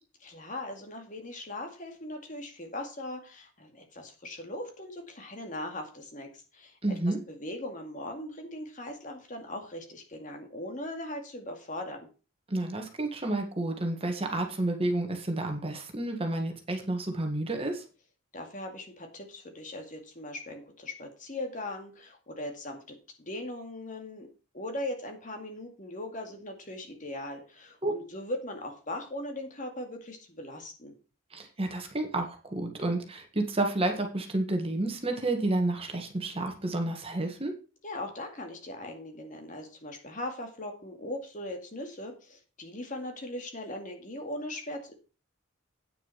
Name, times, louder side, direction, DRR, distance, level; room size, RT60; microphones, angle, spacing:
voice 1, 0.2-6.8 7.3-12.0 18.3-24.3 24.5-30.9 37.8-44.9, left 1 dB, 40° left, 4 dB, 2.2 m, -39 dB
voice 2, 6.8-7.2 12.5-17.8 27.8-27.9 31.3-37.5, right 2 dB, 30° right, 4 dB, 1.7 m, -30 dB
9.2 x 6.5 x 5.7 m, 0.34 s
head